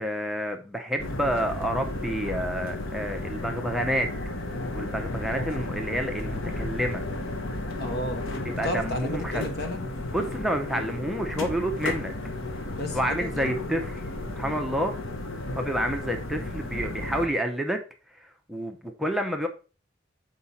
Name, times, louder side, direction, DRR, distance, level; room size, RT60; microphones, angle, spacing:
voice 1, 0.0-4.1 4.7-7.0 8.6-9.4 10.1-12.1 12.9-14.0 14.3-14.9 15.5-17.8 18.2-19.5, equal, ahead, 4 dB, 0.7 m, -29 dB
sound 1, 1.0-17.3, left 2 dB, 85° left, 1.1 m, -33 dB
voice 2, 7.8-9.9 12.7-13.6 15.5-15.7, left 1 dB, 55° left, 5 dB, 1.3 m, -33 dB
7.2 x 4.9 x 4.1 m, 0.34 s
head